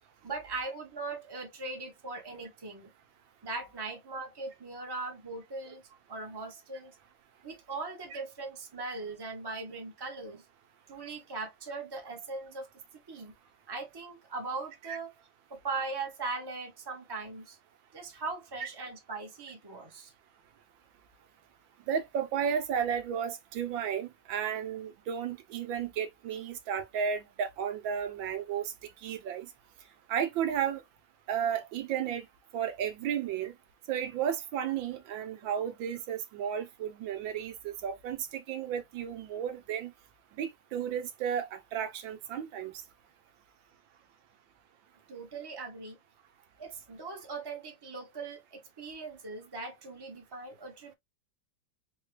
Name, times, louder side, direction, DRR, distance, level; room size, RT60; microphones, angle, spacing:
voice 1, 0.2-2.9 3.4-5.8 6.1-7.0 7.4-10.4 10.9-12.7 13.1-13.3 13.7-15.1 15.5-17.6 17.9-20.1 45.1-46.0 46.6-50.9, right 3 dB, 15° right, 0.9 m, -39 dB
voice 2, 21.9-28.7 29.0-29.5 30.1-30.8 31.3-32.2 32.5-33.5 33.9-39.9 40.4-42.7, right 8 dB, 85° right, 1.6 m, -33 dB
4.6 x 2.3 x 3.1 m
omnidirectional pair, 2.1 m